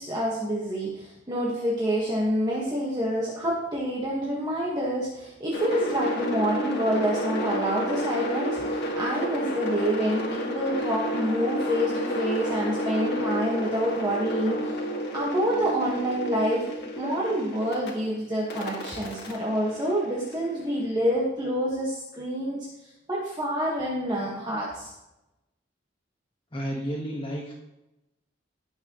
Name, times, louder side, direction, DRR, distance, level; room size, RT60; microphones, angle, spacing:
voice 1, 0.0-14.7 15.1-16.6 17.0-22.6 23.1-24.9, equal, 20° right, -5 dB, 1.7 m, -27 dB
sound 1, 5.5-17.9 18.5-20.6, equal, 60° left, 2.2 m, -31 dB
voice 2, 26.5-27.5, equal, 25° left, -3 dB, 1.6 m, -31 dB
17.0 x 6.5 x 3.1 m, 0.94 s
head